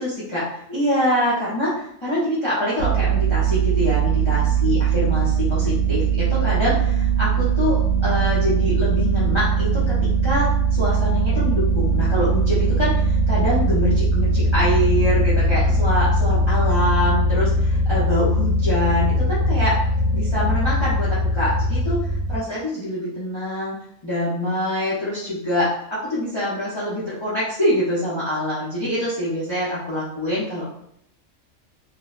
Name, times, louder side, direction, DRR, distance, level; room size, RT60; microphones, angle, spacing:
voice 1, 0.0-1.7 2.0-19.8 20.1-22.0 22.3-23.8 24.0-30.6, equal, 30° left, -9 dB, 0.5 m, -25 dB
sound 1, 2.8-22.4, right 3 dB, 80° left, 1.0 m, -20 dB
2.6 x 2.0 x 2.3 m, 0.74 s
omnidirectional pair, 1.4 m